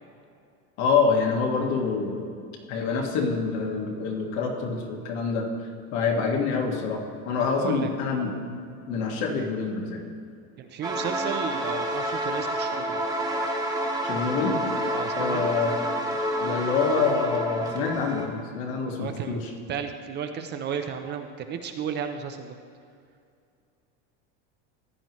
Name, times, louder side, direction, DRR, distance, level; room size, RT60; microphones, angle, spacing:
voice 1, 0.8-2.3 2.7-5.5 5.9-7.0 7.3-8.6 8.9-10.0 14.0-14.6 15.1-15.7 16.4-19.5, left 5 dB, 70° left, 1 dB, 1.9 m, -26 dB
voice 2, 7.5-7.9 10.6-13.0 14.9-15.6 19.0-22.6, right 7 dB, 30° right, 6 dB, 0.6 m, -33 dB
sound 1, 10.8-18.3, right 1 dB, 10° right, 1.2 m, -29 dB
15.0 x 9.4 x 3.1 m, 2.4 s
supercardioid pair, 145°, 35 cm